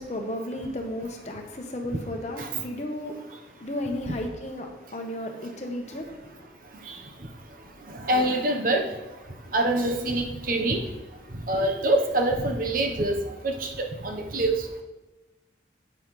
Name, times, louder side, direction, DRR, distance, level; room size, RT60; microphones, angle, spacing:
voice 1, 0.0-6.5, left 1 dB, 40° left, 3 dB, 1.0 m, -34 dB
voice 2, 8.0-8.8 9.5-10.8 11.5-14.5, right 1 dB, 50° right, 3 dB, 1.0 m, -25 dB
8.9 x 8.0 x 3.2 m, 1.1 s
head